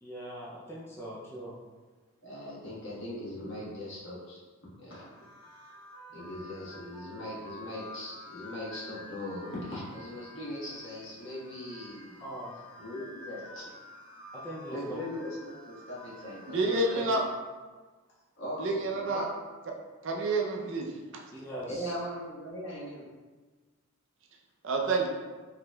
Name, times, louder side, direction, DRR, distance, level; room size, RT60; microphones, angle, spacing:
voice 1, 0.0-1.5 12.2-12.5 14.3-14.9 21.3-21.9, right 1 dB, 10° left, -7 dB, 0.4 m, -41 dB
voice 2, 2.2-4.4 4.8-5.1 6.1-12.2 12.8-13.6 14.7-15.4 15.6-17.2 18.4-19.2 21.6-23.0, left 1 dB, 60° left, -7 dB, 1.4 m, -39 dB
sound 1, 4.9-17.0, equal, 25° left, 0.8 m, -49 dB
voice 3, 16.5-17.2 18.6-19.2 20.0-20.9 21.1-21.2 24.6-25.1, right 2 dB, 60° right, 1 dB, 0.5 m, -28 dB
5.0 x 2.9 x 2.2 m, 1.3 s
head